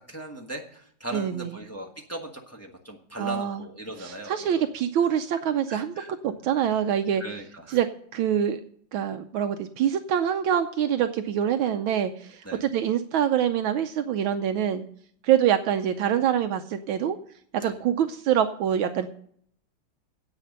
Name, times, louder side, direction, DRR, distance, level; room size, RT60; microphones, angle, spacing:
voice 1, 0.1-4.7 5.7-6.1 7.2-7.8 12.4-12.6 17.6-17.7, right 1 dB, 10° left, 1 dB, 1.2 m, -38 dB
voice 2, 1.1-1.5 3.2-3.6 4.0-6.0 6.2-7.2 7.7-7.9 8.1-8.6 8.9-14.8 15.2-17.2 17.5-19.1, right 9 dB, 80° right, 8 dB, 1.4 m, -25 dB
10.0 x 8.2 x 6.6 m, 0.65 s
omnidirectional pair, 2.3 m